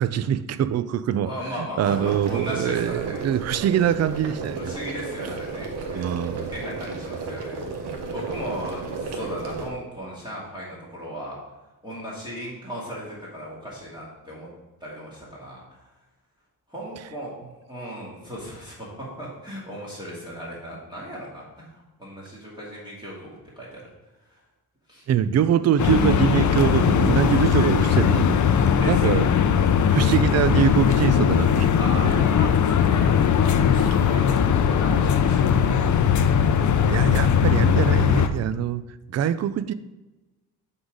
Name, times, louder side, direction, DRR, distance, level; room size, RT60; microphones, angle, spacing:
voice 1, 0.0-1.3 1.8-4.7 5.9-6.5 25.1-29.3 29.9-31.7 36.9-38.8 39.1-39.7, right 9 dB, 45° right, 14 dB, 0.4 m, -23 dB
voice 2, 1.3-3.2 4.5-6.1 6.5-11.4 11.8-14.5 14.8-15.8 16.7-21.4 22.0-23.8 24.9-25.0 28.7-29.3 31.8-34.4 34.7-36.0, equal, 10° right, -6 dB, 2.3 m, -36 dB
sound 1, 1.8-9.7, right 3 dB, 90° right, 1.1 m, -33 dB
sound 2, 25.8-38.3, left 7 dB, 50° left, 0.6 m, -19 dB
7.9 x 4.0 x 4.8 m, 1.1 s
cardioid pair, 105°, 38 cm